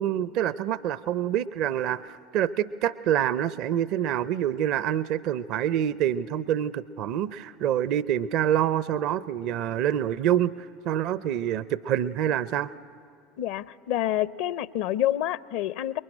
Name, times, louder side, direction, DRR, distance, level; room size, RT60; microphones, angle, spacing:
voice 1, 0.0-12.7, right 10 dB, 55° right, 17 dB, 0.6 m, -26 dB
voice 2, 13.4-16.0, left 13 dB, 60° left, 17 dB, 0.6 m, -28 dB
26.5 x 21.5 x 9.9 m, 2.3 s
hypercardioid pair, 75°, 0 cm